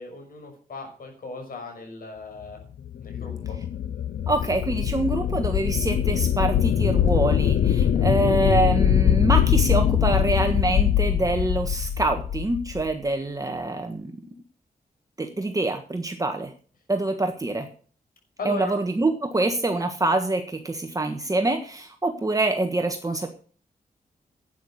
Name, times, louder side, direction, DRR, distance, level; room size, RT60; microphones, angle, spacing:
voice 1, 0.0-2.6 3.0-3.6 18.4-18.8, left 3 dB, 70° left, 3 dB, 6.2 m, -37 dB
sound 1, 2.8-12.9, left 9 dB, 85° left, 0.6 m, -22 dB
voice 2, 4.3-14.3 15.2-16.5 16.9-17.7 18.4-23.3, right 2 dB, 20° right, 5 dB, 1.4 m, -25 dB
11.5 x 9.2 x 6.6 m, 0.42 s
wide cardioid pair, 115°, 15 cm